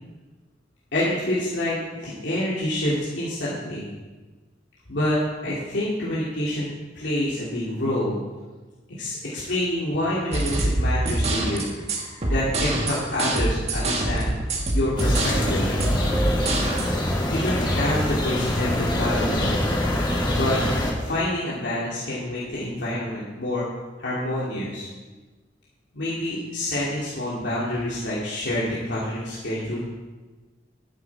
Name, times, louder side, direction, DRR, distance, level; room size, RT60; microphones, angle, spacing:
voice 1, 0.9-1.8 2.0-3.9 4.9-5.2 5.4-6.7 6.9-8.2 9.0-14.3 14.7-15.1 15.5-15.7 17.3-20.7 21.0-23.6 24.0-24.9 25.9-29.8, left 1 dB, 80° left, -8 dB, 2.8 m, -27 dB
sound 1, 10.3-16.9, right 1 dB, 35° right, 1.8 m, -25 dB
sound 2, 15.0-20.9, left 1 dB, 25° left, 2.1 m, -24 dB
13.0 x 9.7 x 4.8 m, 1.3 s
head